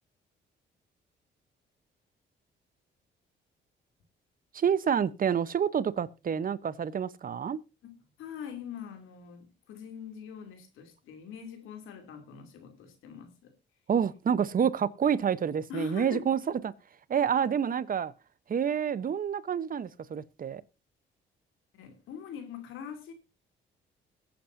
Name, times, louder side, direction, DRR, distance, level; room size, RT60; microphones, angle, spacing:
voice 1, 4.5-7.6 13.9-16.7 17.1-18.1 18.5-20.6, right 8 dB, 45° right, 0.9 m, -28 dB
voice 2, 7.8-13.5 15.7-16.2 21.7-23.1, left 8 dB, 90° left, 2.8 m, -43 dB
21.5 x 8.9 x 2.7 m
cardioid pair, 90°, 20 cm